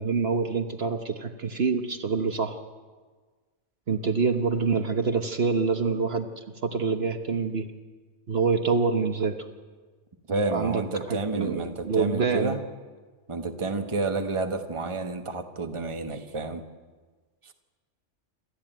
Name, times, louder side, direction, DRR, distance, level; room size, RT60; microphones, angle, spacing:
voice 1, 0.0-2.6 3.9-6.3 6.6-7.7 8.3-9.4 10.5-10.8 11.1-12.5, right 4 dB, 60° right, 7 dB, 1.3 m, -26 dB
voice 2, 10.3-12.6 13.3-16.6 17.4-17.5, right 3 dB, 25° right, 6 dB, 1.3 m, -30 dB
27.5 x 13.5 x 9.1 m, 1.4 s
omnidirectional pair, 1.2 m